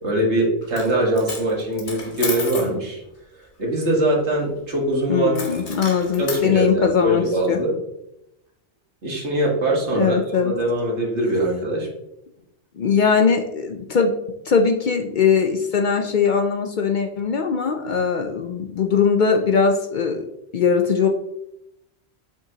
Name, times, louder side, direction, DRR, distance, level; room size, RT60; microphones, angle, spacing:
voice 1, 0.0-3.0 3.6-5.6 6.2-7.7 9.0-11.9, right 1 dB, 80° right, -1 dB, 1.9 m, -22 dB
Coin (dropping), 0.6-0.9 1.2-2.7 5.3-6.4, left 3 dB, 80° left, 1.6 m, -31 dB
voice 2, 5.1-7.2 7.5-7.6 9.9-10.5 12.8-14.1 14.5-20.2 20.5-21.1, left 6 dB, 55° left, 5 dB, 0.6 m, -20 dB
7.3 x 5.5 x 2.9 m, 0.84 s
omnidirectional pair, 1.1 m